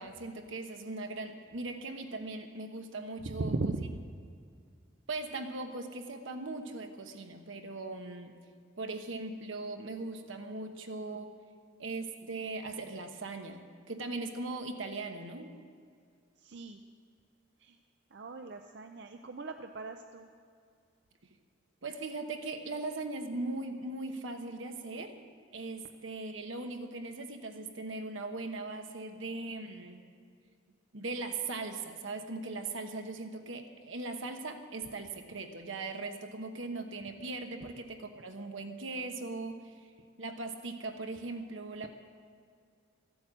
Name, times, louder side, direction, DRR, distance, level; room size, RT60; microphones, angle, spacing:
voice 1, 0.0-3.5 5.1-8.3 8.8-11.3 11.8-15.6 21.8-25.1 25.5-30.0 30.9-39.7 40.2-41.9, right 3 dB, 80° right, 5 dB, 1.2 m, -39 dB
voice 2, 3.3-4.0 16.4-16.8 17.6-17.8 18.1-20.3 37.6-37.7, right 3 dB, 60° right, 5 dB, 0.5 m, -38 dB
14.0 x 8.6 x 7.5 m, 2.2 s
head